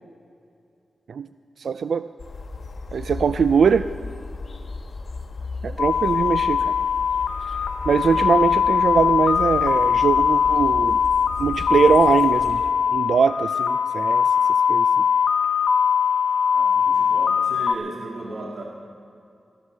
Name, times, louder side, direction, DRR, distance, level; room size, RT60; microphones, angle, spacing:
voice 1, 1.6-2.1 2.9-3.9 5.6-6.7 7.9-11.0 11.4-12.6 12.9-14.3 14.7-14.9, right 6 dB, 70° right, 11 dB, 0.4 m, -21 dB
sound 1, 2.2-12.7, left 3 dB, 45° left, 1.3 m, -35 dB
sound 2, 5.8-17.7, left 7 dB, 85° left, 0.8 m, -21 dB
voice 2, 16.5-18.6, right 2 dB, 50° right, -2 dB, 1.9 m, -36 dB
15.0 x 14.0 x 6.4 m, 2.6 s
wide cardioid pair, 135°, 0 cm